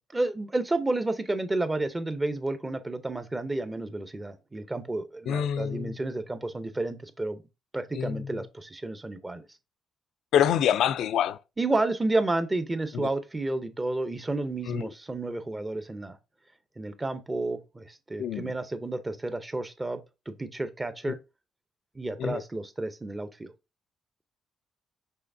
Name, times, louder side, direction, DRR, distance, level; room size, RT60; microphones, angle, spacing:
voice 1, 0.1-7.4 7.7-9.4 11.6-16.2 16.8-20.0 20.3-21.2 22.0-23.5, right 2 dB, 20° right, 0.6 m, -31 dB
voice 2, 5.3-6.0 7.9-8.4 10.3-11.4 12.9-13.1 14.7-14.9 18.2-18.5 21.1-21.2 22.2-22.4, left 9 dB, 80° left, 0.4 m, -26 dB
5.6 x 3.3 x 2.6 m
cardioid pair, 90°, 0 cm